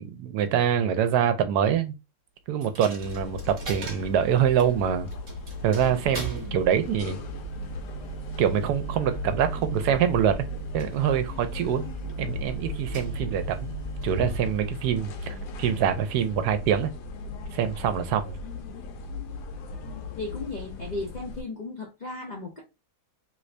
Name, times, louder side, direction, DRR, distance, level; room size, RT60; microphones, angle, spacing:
voice 1, 0.0-1.9 2.5-5.1 5.6-7.2 8.4-10.5 10.7-11.8 12.2-13.7 14.0-16.9 17.5-18.4, right 9 dB, 80° right, 1.1 m, -25 dB
Coin (dropping), 2.6-16.3, right 3 dB, 40° right, 1.1 m, -38 dB
sound 1, 3.0-21.4, left 4 dB, 80° left, 1.2 m, -38 dB
voice 2, 20.2-22.6, left 3 dB, 55° left, 0.5 m, -35 dB
3.0 x 2.5 x 3.2 m
omnidirectional pair, 1.7 m